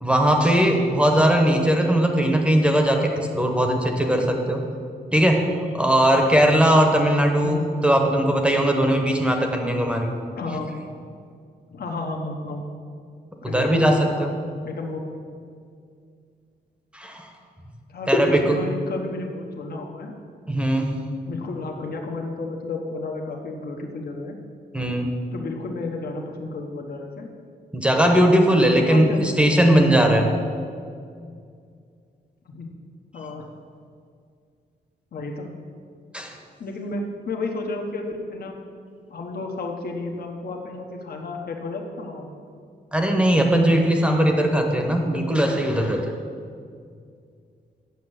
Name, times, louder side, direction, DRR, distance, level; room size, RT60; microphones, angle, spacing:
voice 1, 0.0-4.6 5.1-5.4 5.7-10.1 13.4-14.3 16.9-17.2 18.1-18.6 20.5-20.9 24.7-25.1 27.7-30.3 36.1-36.3 42.9-46.0, right 1 dB, 5° right, 2 dB, 1.0 m, -19 dB
voice 2, 10.3-10.7 11.7-12.6 13.4-14.3 14.6-15.0 17.9-20.1 21.3-24.4 25.3-27.3 28.8-29.7 32.5-32.7 33.1-33.5 35.1-35.5 36.6-38.6 39.1-42.3 45.1-45.4, left 3 dB, 60° left, 1 dB, 1.1 m, -32 dB
8.2 x 6.5 x 8.0 m, 2.3 s
wide cardioid pair, 160°, 18 cm